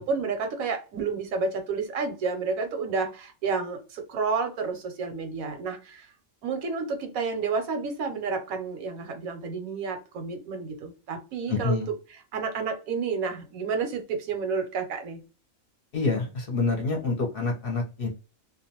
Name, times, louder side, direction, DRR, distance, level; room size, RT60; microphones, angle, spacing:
voice 1, 0.0-6.1 6.4-11.8 12.3-15.2, right 4 dB, 85° right, 1.1 m, -30 dB
voice 2, 11.5-11.9 15.9-18.1, left 3 dB, 50° left, 0.8 m, -27 dB
2.5 x 2.2 x 2.8 m
omnidirectional pair, 1.4 m